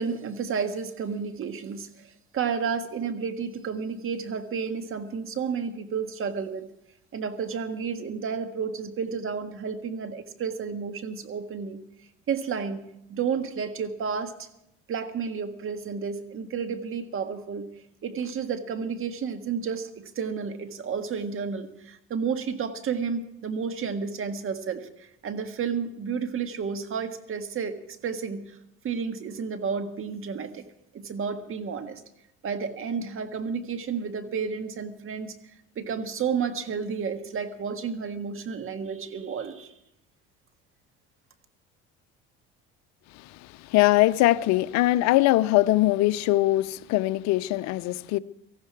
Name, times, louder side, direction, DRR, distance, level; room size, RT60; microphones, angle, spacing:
voice 1, 0.0-1.9 2.3-6.7 7.1-11.8 12.3-12.8 13.1-14.5 14.9-17.7 18.0-28.4 28.8-30.6 30.9-32.0 32.4-35.3 35.8-39.7, right 6 dB, 45° right, 1.7 m, -31 dB
voice 2, 43.1-48.2, left 17 dB, 65° left, 0.6 m, -22 dB
18.0 x 14.5 x 4.7 m
supercardioid pair, 85°, 30 cm